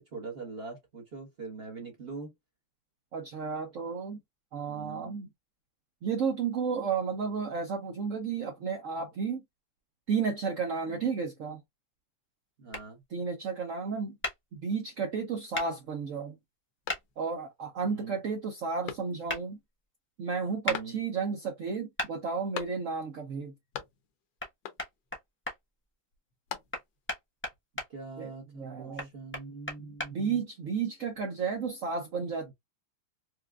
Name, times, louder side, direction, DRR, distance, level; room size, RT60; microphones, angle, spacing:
voice 1, 0.0-2.3 4.7-5.1 10.9-11.0 12.6-13.0 17.9-18.2 20.7-21.0 27.9-30.4 32.4-32.5, right 4 dB, 40° right, 0.9 m, -43 dB
voice 2, 3.1-4.2 4.5-5.3 6.0-9.4 10.1-11.6 13.1-14.2 14.5-16.4 17.2-19.6 20.2-23.5 28.2-29.1 29.9-32.5, right 5 dB, 70° right, 0.7 m, -32 dB
sound 1, 12.7-12.8 14.2-14.4 15.5-15.7 16.9-17.0 19.3-19.4 20.6-20.8 22.0-22.1 24.4-24.5 24.8-25.6 26.7-27.9 29.0-30.1, left 1 dB, 20° left, 0.3 m, -34 dB
sound 2, 16.8-17.5 18.0-18.1 18.8-19.5 20.7-21.4 22.5-23.2 23.4-24.2 24.6-25.1 26.1-27.1, left 10 dB, 75° left, 1.3 m, -43 dB
4.8 x 2.2 x 2.2 m
omnidirectional pair, 2.0 m